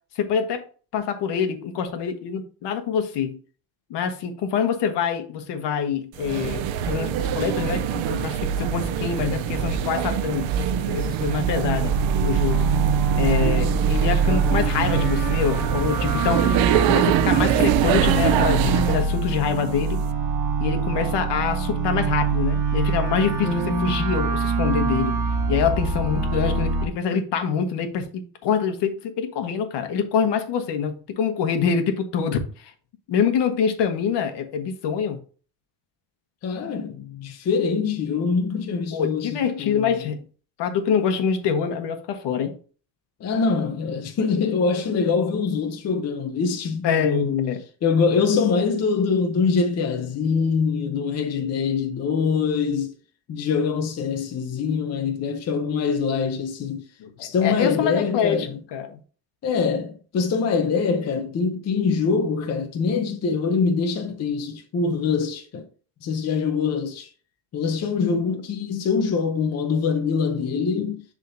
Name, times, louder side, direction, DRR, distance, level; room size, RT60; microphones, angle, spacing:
voice 1, 0.1-0.6 0.9-3.4 3.9-11.9 12.2-12.7 13.2-16.5 16.9-20.0 20.6-25.2 25.5-32.7 33.1-35.2 38.9-40.2 40.6-42.6 46.8-47.6 57.0-59.0, left 7 dB, 60° left, 1.2 m, -25 dB
sound 1, 6.2-19.1, right 10 dB, 80° right, 0.7 m, -24 dB
sound 2, 11.0-26.8, right 4 dB, 45° right, 1.4 m, -24 dB
voice 2, 23.4-24.1 36.4-40.0 43.2-47.4 47.8-52.9 53.3-56.9 57.2-58.6 59.4-65.7 66.0-67.1 67.5-71.0, left 5 dB, 35° left, 0.7 m, -24 dB
10.5 x 3.7 x 2.6 m
cardioid pair, 145°, 46 cm